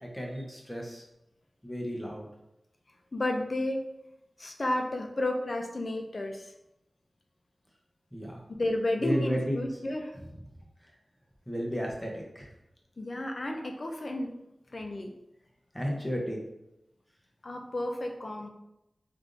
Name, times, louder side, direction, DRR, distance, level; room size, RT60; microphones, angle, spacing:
voice 1, 0.0-1.0 1.6-2.3 8.1-8.4 9.0-9.7 11.5-12.5 15.7-16.4, equal, 5° left, -1 dB, 0.7 m, -33 dB
voice 2, 3.1-3.8 4.4-6.5 8.5-10.2 13.0-14.3 14.7-15.1 17.4-18.5, left 1 dB, 50° left, 3 dB, 0.4 m, -32 dB
3.3 x 2.5 x 2.6 m, 0.87 s
wide cardioid pair, 60°, 0 cm